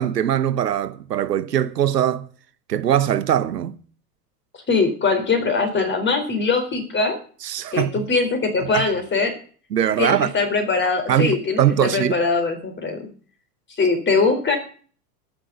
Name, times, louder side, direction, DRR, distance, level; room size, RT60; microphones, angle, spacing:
voice 1, 0.0-2.3 2.7-3.8 7.4-8.0 8.7-8.8 9.7-10.3 11.1-12.1, right 10 dB, 80° right, 1.1 m, -21 dB
voice 2, 4.7-7.2 7.7-9.3 10.0-13.1 13.8-14.6, left 4 dB, 25° left, 4.0 m, -21 dB
12.5 x 6.2 x 9.7 m
hypercardioid pair, 90°, 47 cm